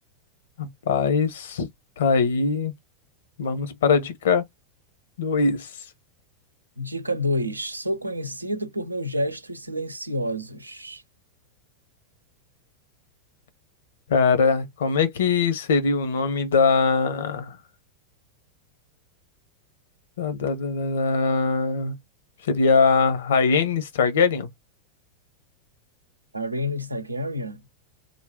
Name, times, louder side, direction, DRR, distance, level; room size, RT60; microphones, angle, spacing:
voice 1, 0.6-1.7 2.0-2.7 3.4-4.4 5.2-5.7 14.1-17.6 20.2-21.9 22.5-24.5, left 4 dB, 60° left, 0.9 m, -22 dB
voice 2, 6.8-11.0 26.3-27.6, equal, 85° right, 0.6 m, -29 dB
3.6 x 2.3 x 3.7 m
figure-of-eight pair, 90°, 0 cm